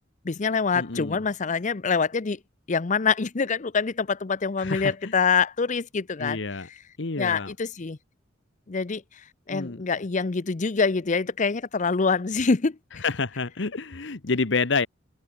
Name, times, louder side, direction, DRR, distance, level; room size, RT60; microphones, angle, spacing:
voice 1, 0.2-2.4 2.7-6.4 7.2-8.0 8.7-9.0 9.5-12.8, left 5 dB, 40° left, 0.6 m, -25 dB
voice 2, 0.7-1.2 4.6-5.1 6.2-6.7 7.0-7.5 9.5-9.8 13.0-14.9, left 4 dB, 65° left, 1.1 m, -28 dB
open air
head